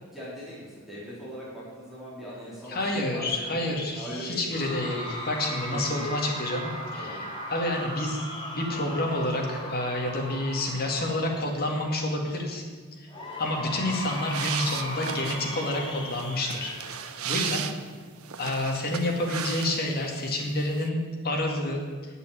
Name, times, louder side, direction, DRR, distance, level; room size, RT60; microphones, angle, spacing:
voice 1, 0.1-3.6 4.0-4.9 5.5-6.1 7.0-7.2, equal, ahead, -8 dB, 3.4 m, -40 dB
voice 2, 2.7-12.6 13.0-13.1 13.4-16.7 17.2-17.6 18.4-21.8, left 1 dB, 45° left, 0 dB, 2.2 m, -29 dB
Cheering / Crowd, 4.5-11.8 13.1-17.8, equal, 20° left, 2.7 m, -38 dB
sound 1, 14.0-20.1 20.4-20.9, right 9 dB, 70° right, 0.7 m, -36 dB
8.4 x 8.2 x 8.8 m, 1.5 s
head